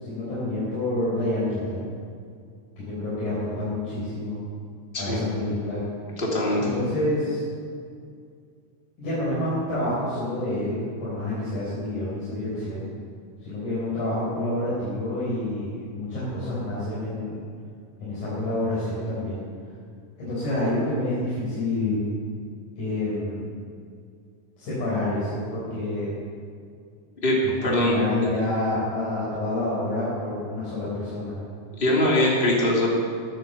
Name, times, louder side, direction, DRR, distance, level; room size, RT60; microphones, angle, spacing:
voice 1, 0.0-1.9 2.8-4.4 5.0-5.8 6.6-7.4 9.0-12.9 13.4-17.4 18.0-19.4 20.2-22.0 22.8-23.5 24.6-26.1 27.4-31.4, left 1 dB, 60° left, -9 dB, 5.4 m, -28 dB
voice 2, 6.2-6.6 27.2-27.9 31.8-32.9, left 1 dB, 15° left, -4 dB, 2.3 m, -22 dB
13.0 x 11.5 x 6.9 m, 2.3 s
omnidirectional pair, 4.0 m